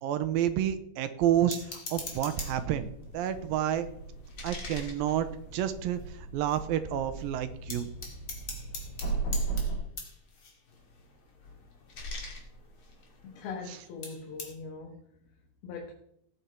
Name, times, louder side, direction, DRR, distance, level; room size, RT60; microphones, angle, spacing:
voice 1, 0.0-3.9 4.4-5.3 5.5-7.9, right 11 dB, 80° right, 10 dB, 2.5 m, -29 dB
sound 1, 1.5-2.8 3.2-6.0 6.5-6.6 6.8-7.2 7.7-13.7 14.0-14.5, left 3 dB, 40° left, 2.6 m, -43 dB
sound 2, 2.0-9.8, right 3 dB, 65° left, 6.0 m, -37 dB
voice 2, 13.2-15.0 15.6-15.9, left 4 dB, 85° left, 1 dB, 3.5 m, -41 dB
18.5 x 8.1 x 4.5 m, 0.72 s
omnidirectional pair, 4.2 m